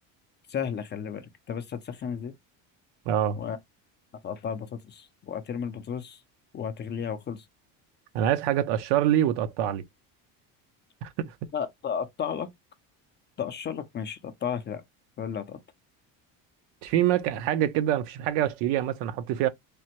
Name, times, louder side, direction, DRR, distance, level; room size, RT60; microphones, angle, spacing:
voice 1, 0.5-2.3 3.4-3.6 4.2-6.2 6.5-7.5 11.5-12.5 13.4-14.8 15.2-15.6, left 7 dB, 25° left, 0.4 m, -33 dB
voice 2, 3.1-3.4 8.1-9.8 11.0-11.3 16.8-19.5, right 11 dB, 75° right, 0.7 m, -25 dB
3.3 x 2.0 x 2.9 m
cardioid pair, 125°, 41 cm